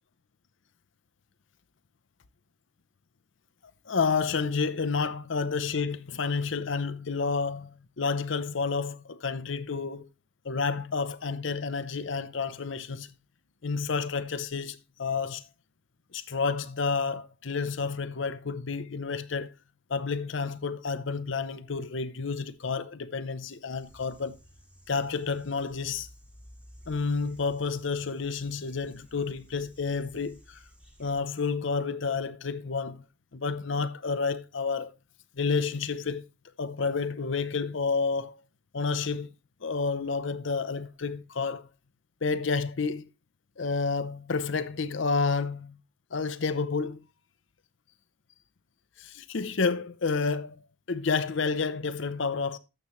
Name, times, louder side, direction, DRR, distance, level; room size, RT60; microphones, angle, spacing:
voice 1, 3.9-10.1 10.4-13.2 13.6-15.4 16.1-19.5 19.9-24.4 24.9-26.1 26.9-30.6 31.0-33.0 33.3-34.9 35.3-36.2 36.6-38.4 38.7-39.3 39.6-41.7 42.2-43.1 43.6-45.8 46.1-47.0 49.0-52.6, left 4 dB, 75° left, 0.7 m, -30 dB
sound 1, 23.7-31.2, equal, 5° right, 1.4 m, -55 dB
12.0 x 7.3 x 3.1 m
head